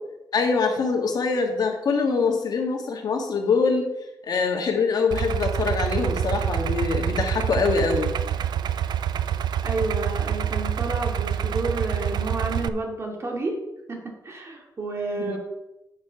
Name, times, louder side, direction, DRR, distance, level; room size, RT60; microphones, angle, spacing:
voice 1, 0.3-3.9 4.2-8.1 15.2-15.4, left 4 dB, 65° left, 3 dB, 1.5 m, -24 dB
Idling, 5.1-12.7, right 9 dB, 80° right, 0.5 m, -26 dB
voice 2, 9.6-13.6 13.9-15.4, right 2 dB, 40° right, 1 dB, 2.2 m, -30 dB
8.5 x 6.7 x 5.6 m, 0.93 s
wide cardioid pair, 130°, 7 cm